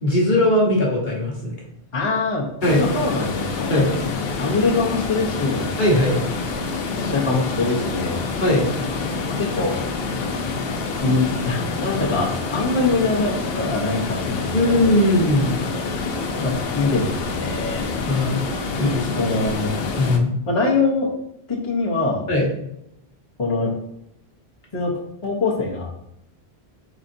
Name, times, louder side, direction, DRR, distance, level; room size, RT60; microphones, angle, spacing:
voice 1, 0.0-1.5 2.6-2.8 3.7-3.9 5.8-6.2 8.4-8.6 14.5-15.6 18.1-18.4 18.8-19.3 20.0-20.3 22.3-22.5, left 1 dB, 50° left, -3 dB, 1.3 m, -19 dB
voice 2, 1.9-2.5 2.8-3.9 4.4-5.7 6.9-8.2 9.3-9.7 11.0-14.8 16.4-18.2 19.2-19.7 20.5-21.1 21.5-22.3 23.4-23.7 24.7-25.9, left 3 dB, 35° left, -6 dB, 0.9 m, -23 dB
sound 1, 2.6-20.2, left 4 dB, 70° left, 0.8 m, -27 dB
4.8 x 4.1 x 2.6 m, 0.78 s
omnidirectional pair, 1.1 m